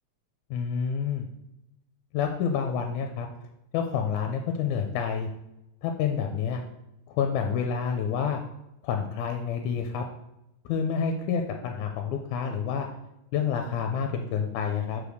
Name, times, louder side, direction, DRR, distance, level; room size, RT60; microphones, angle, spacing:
voice 1, 0.5-1.2 2.1-3.3 3.7-5.3 5.8-6.6 7.1-8.4 8.8-10.0 10.7-12.9 13.3-15.0, left 7 dB, 85° left, 4 dB, 2.0 m, -28 dB
5.1 x 5.1 x 6.3 m, 0.89 s
omnidirectional pair, 3.6 m